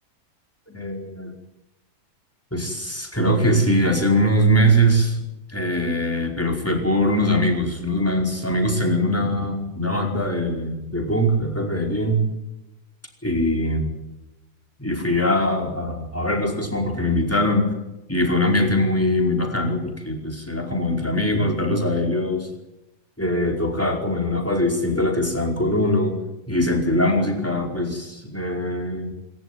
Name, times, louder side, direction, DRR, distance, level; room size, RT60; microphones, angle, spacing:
voice 1, 0.7-1.3 2.5-5.2 5.5-12.2 13.2-13.9 14.8-17.7 18.1-22.5 23.2-26.2 26.5-29.1, equal, 10° left, 2 dB, 4.9 m, -22 dB
27.0 x 14.0 x 9.5 m, 0.96 s
omnidirectional pair, 1.7 m